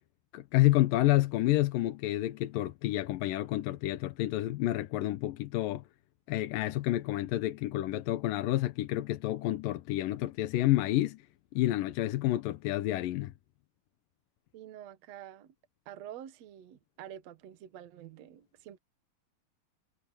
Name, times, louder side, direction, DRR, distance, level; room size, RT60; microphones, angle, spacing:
voice 1, 0.3-5.8 6.3-11.2 11.6-13.3, left 16 dB, 75° left, 2.3 m, -29 dB
voice 2, 14.5-15.5 15.9-18.8, right 11 dB, 60° right, 1.9 m, -47 dB
omnidirectional pair, 4.7 m